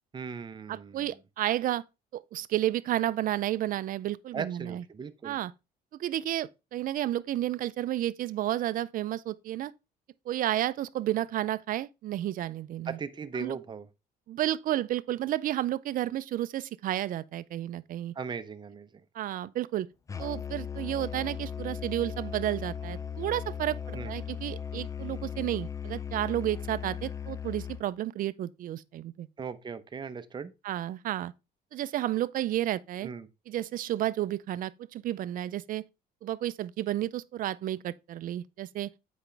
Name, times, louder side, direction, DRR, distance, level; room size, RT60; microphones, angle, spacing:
voice 1, 0.1-1.1 4.3-5.4 12.9-13.9 18.1-18.9 23.9-24.2 29.4-30.5 33.0-33.3, right 5 dB, 25° right, 0.7 m, -38 dB
voice 2, 0.7-1.8 2.1-4.8 5.2-5.5 5.9-9.7 10.3-13.0 13.4-13.6 14.3-18.1 19.1-19.9 20.2-29.3 30.6-31.3 31.7-33.1 33.5-35.8 36.2-38.9, right 13 dB, 55° right, 0.5 m, -31 dB
Musical instrument, 20.1-27.9, left 8 dB, 20° left, 0.4 m, -37 dB
8.1 x 5.1 x 3.3 m
cardioid pair, 110°, 17 cm